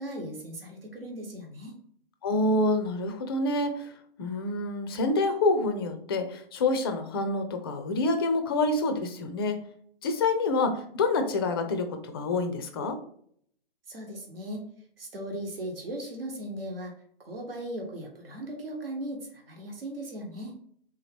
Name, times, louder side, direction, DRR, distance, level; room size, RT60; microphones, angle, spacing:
voice 1, 0.0-1.8 13.9-14.7 15.0-16.9 17.2-20.5, right 1 dB, 70° right, 1 dB, 1.2 m, -38 dB
voice 2, 2.2-3.9 4.2-9.6 10.0-13.0, left 2 dB, 25° left, 7 dB, 0.4 m, -27 dB
3.5 x 2.9 x 3.4 m, 0.64 s
figure-of-eight pair, 130°, 29 cm